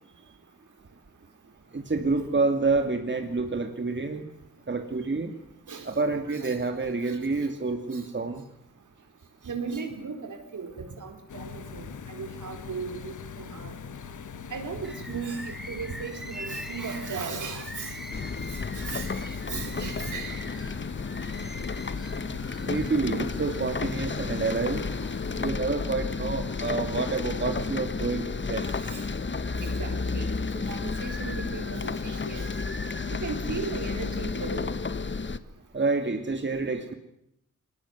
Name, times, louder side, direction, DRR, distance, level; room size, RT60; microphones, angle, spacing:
voice 1, 1.7-4.3 4.7-5.3 5.8-8.4 22.6-24.8 25.4-28.7 35.7-36.9, right 3 dB, 35° right, 6 dB, 2.5 m, -28 dB
voice 2, 5.7-7.5 7.9-8.0 9.4-13.8 14.5-17.9 18.7-20.4 26.8-27.0 28.6-29.0 29.6-30.3 30.7-32.5 33.2-34.8, right 5 dB, 65° right, 6 dB, 4.5 m, -37 dB
sound 1, 11.3-25.5, left 6 dB, 65° left, 1.3 m, -42 dB
Bird, 14.8-23.7 24.3-25.3 25.8-26.8 27.2-28.6 29.1-33.4 34.1-34.6, equal, ahead, 2.8 m, -45 dB
sound 2, 18.1-35.4, left 4 dB, 35° left, 1.3 m, -32 dB
21.0 x 19.5 x 9.5 m, 0.80 s
cardioid pair, 60°, 32 cm